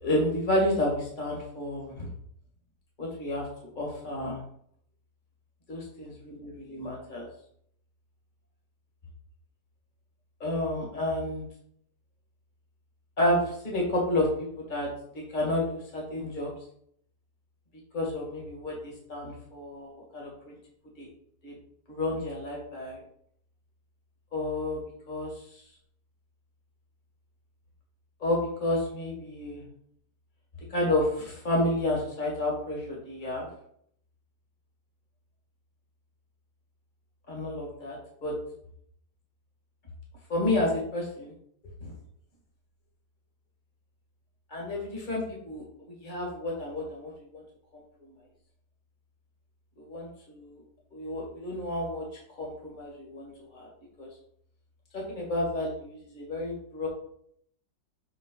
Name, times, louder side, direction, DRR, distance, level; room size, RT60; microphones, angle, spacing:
voice 1, 0.0-2.1 3.0-3.5 3.8-4.4 5.7-7.3 10.4-11.4 13.2-14.3 14.7-14.9 15.3-16.5 17.9-20.5 21.0-21.1 21.4-21.5 21.9-23.0 24.3-24.8 25.1-25.6 28.2-29.6 30.7-33.5 37.3-38.0 38.2-38.3 40.3-41.3 41.8-41.9 44.5-47.4 47.7-48.2 49.8-50.6 50.9-52.0 52.4-53.7 54.0-54.1 54.9-56.9, left 1 dB, 25° left, -2 dB, 1.9 m, -30 dB
6.9 x 3.7 x 3.9 m, 0.67 s
omnidirectional pair, 1.9 m